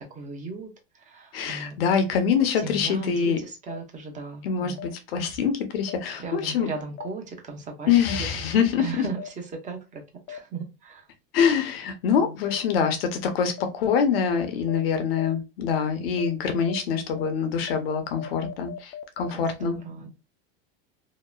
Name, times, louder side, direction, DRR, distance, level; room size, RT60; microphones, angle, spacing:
voice 1, 0.0-1.8 2.5-4.8 6.2-8.0 8.8-9.2 9.5-10.0 10.3-11.1 12.2-12.4 19.3-20.1, right 4 dB, 25° right, 0.8 m, -37 dB
voice 2, 1.3-3.4 4.4-6.7 7.9-9.0 11.3-19.8, left 7 dB, 85° left, 0.8 m, -25 dB
sound 1, 3.7-3.8 4.8-4.9 5.9-6.0 7.0-7.1 8.1-8.2 9.2-9.3 10.3-10.4 11.4-11.5 12.5-12.6 13.6-13.7 14.2-14.3 14.7-14.8 15.2-15.3 15.7-15.8 16.2-16.3 16.7-16.8 17.2-17.3 17.7-17.8 18.2-19.3, left 9 dB, 35° left, 0.4 m, -37 dB
2.9 x 2.0 x 2.2 m
supercardioid pair, 115°, 29 cm